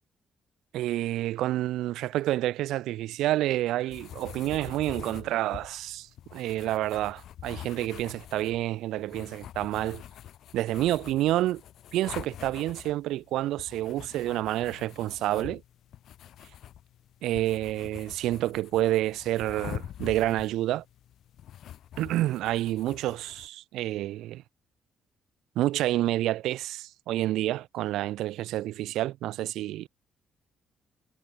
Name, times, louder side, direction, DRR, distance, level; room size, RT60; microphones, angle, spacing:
voice 1, 0.7-10.0 10.5-11.6 11.9-15.6 17.2-20.8 22.0-24.4 25.5-29.9, right 15 dB, 90° right, 1.2 m, -29 dB
sound 1, 3.9-23.5, left 11 dB, 70° left, 2.0 m, -45 dB
cardioid pair, 90°, 0 cm